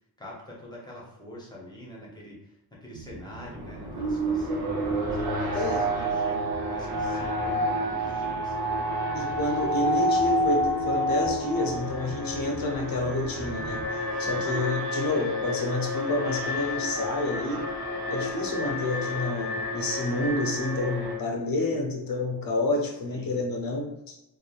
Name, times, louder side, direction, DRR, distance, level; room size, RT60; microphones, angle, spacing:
voice 1, 0.2-8.5 14.1-14.5 22.9-23.4, equal, 10° left, -5 dB, 0.7 m, -44 dB
sound 1, 2.9-13.9, right 1 dB, 40° right, 0.5 m, -44 dB
Alarm, 3.2-21.1, equal, 85° right, 0.7 m, -29 dB
voice 2, 9.1-13.9 14.2-17.7 18.1-24.2, left 2 dB, 60° left, 1 dB, 0.6 m, -29 dB
2.9 x 2.1 x 2.4 m, 0.90 s
wide cardioid pair, 130°, 39 cm